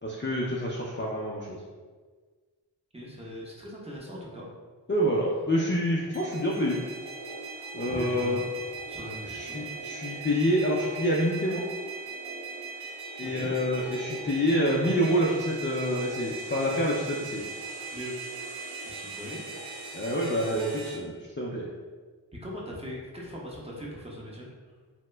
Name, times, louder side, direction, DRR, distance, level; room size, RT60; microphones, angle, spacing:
voice 1, 0.0-1.6 4.9-6.8 7.7-8.5 9.2-11.6 13.2-17.4 19.9-20.7 20.9-21.7, equal, 25° left, -4 dB, 0.4 m, -27 dB
voice 2, 2.9-4.5 7.8-8.4 8.9-9.7 13.2-13.9 17.9-18.1 18.8-19.5 20.6-20.8 22.4-24.5, equal, 15° right, -4 dB, 0.8 m, -40 dB
sound 1, 6.1-20.9, right 3 dB, 60° right, 0.9 m, -39 dB
2.8 x 2.1 x 3.2 m, 1.5 s
cardioid pair, 45°, 45 cm